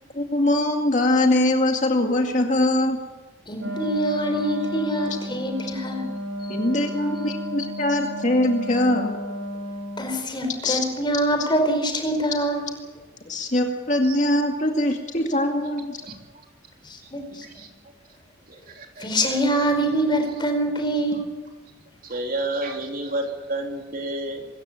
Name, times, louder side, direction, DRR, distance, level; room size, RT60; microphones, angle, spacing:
voice 1, 0.1-3.0 6.5-9.1 10.6-10.8 13.3-16.0, left 1 dB, 40° left, 3 dB, 2.2 m, -22 dB
voice 2, 3.5-6.1 10.0-12.7 16.8-17.4 19.0-21.2, right 1 dB, 25° left, 5 dB, 4.5 m, -24 dB
Wind instrument woodwind instrument, 3.6-10.2, equal, 90° right, 6.3 m, -32 dB
voice 3, 18.5-19.4 22.0-24.5, right 2 dB, 45° right, 2 dB, 3.4 m, -31 dB
24.5 x 14.5 x 8.6 m, 1.2 s
head